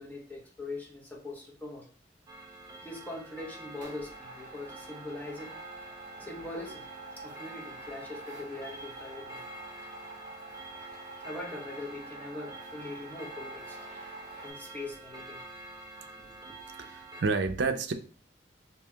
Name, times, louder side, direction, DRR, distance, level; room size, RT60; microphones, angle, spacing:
voice 1, 0.0-1.9 2.8-5.6 6.2-6.9 7.2-9.5 11.2-13.9 14.4-15.4 16.2-16.3, left 2 dB, 10° left, 0.8 m, -42 dB
Clock, 2.3-17.2, right 2 dB, 20° right, 0.7 m, -47 dB
sound 1, 2.9-3.2 3.7-14.5, right 2 dB, 45° right, 1.2 m, -47 dB
voice 2, 16.8-17.9, right 4 dB, 70° right, 0.5 m, -29 dB
5.3 x 2.8 x 2.3 m
head